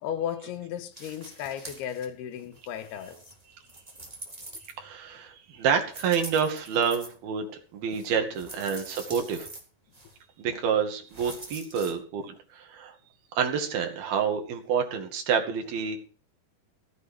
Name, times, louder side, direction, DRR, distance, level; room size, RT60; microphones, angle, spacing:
voice 1, 0.0-3.2 9.1-9.3, left 9 dB, 80° left, 3.2 m, -35 dB
sound 1, 0.9-2.1 2.4-5.1 5.9-7.1 7.9-9.6 9.9-10.2 11.1-11.9, right 2 dB, 10° right, 2.9 m, -44 dB
voice 2, 4.8-9.4 10.4-13.0 13.3-16.0, right 7 dB, 65° right, 4.0 m, -28 dB
15.5 x 8.1 x 6.5 m
omnidirectional pair, 4.7 m